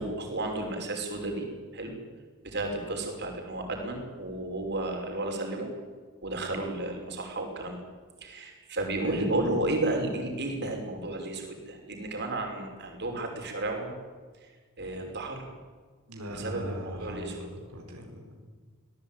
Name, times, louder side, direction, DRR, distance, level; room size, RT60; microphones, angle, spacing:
voice 1, 0.0-1.4 1.7-2.0 2.4-5.7 6.2-7.8 8.2-13.9 14.8-15.4 16.3-17.5, right 2 dB, 50° right, 3 dB, 5.6 m, -32 dB
voice 2, 16.1-18.5, equal, 80° right, 2 dB, 4.4 m, -40 dB
25.0 x 18.5 x 9.3 m, 1.5 s
head